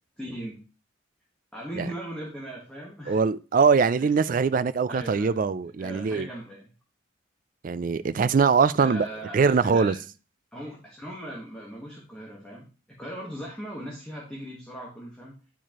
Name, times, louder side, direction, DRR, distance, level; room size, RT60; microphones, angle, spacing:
voice 1, 0.2-0.6 1.5-3.2 4.0-4.1 4.9-5.3 5.8-6.6 8.8-10.0 10.5-15.3, right 1 dB, 5° left, 1.3 m, -38 dB
voice 2, 3.1-6.3 7.6-9.1 9.3-9.9, right 5 dB, 40° right, 0.3 m, -22 dB
10.0 x 4.7 x 2.9 m
head